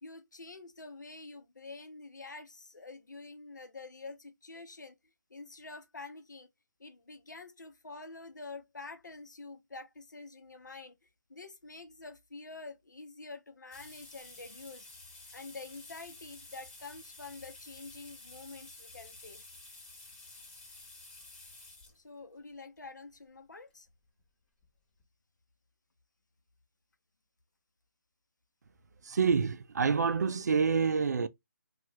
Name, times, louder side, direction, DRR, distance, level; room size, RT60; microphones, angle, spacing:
voice 1, 0.0-5.0 5.3-6.5 6.8-14.9 15.3-19.4 21.9-23.9, left 3 dB, 90° left, 0.7 m, -47 dB
sound 1, 13.7-22.0 22.8-22.9 24.2-24.3 24.6-24.7 25.0-25.1, left 2 dB, 25° left, 1.4 m, -51 dB
voice 2, 29.0-31.3, right 5 dB, 65° right, 0.4 m, -27 dB
2.8 x 2.4 x 3.1 m
figure-of-eight pair, 155°, 10 cm